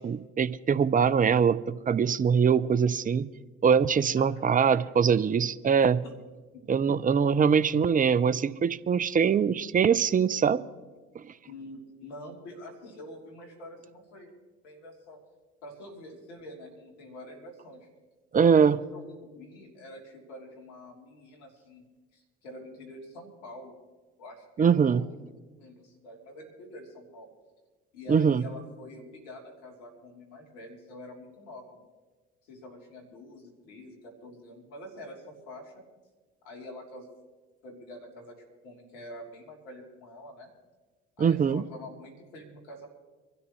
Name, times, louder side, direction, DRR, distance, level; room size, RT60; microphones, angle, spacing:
voice 1, 0.0-3.3 3.6-6.0 6.7-10.6 11.1-11.2 18.3-18.8 24.6-25.0 28.1-28.4 41.2-41.6, right 6 dB, 25° right, 16 dB, 0.6 m, -23 dB
voice 2, 11.4-14.3 14.6-15.2 15.6-17.9 18.4-21.8 22.1-23.7 24.2-25.1 25.6-27.3 27.9-31.9 32.4-35.8 36.4-37.1 37.6-38.3 38.6-40.5 41.2-42.9, left 1 dB, 80° left, 0 dB, 3.4 m, -46 dB
24.5 x 13.0 x 3.2 m, 1.3 s
hypercardioid pair, 55°, 35 cm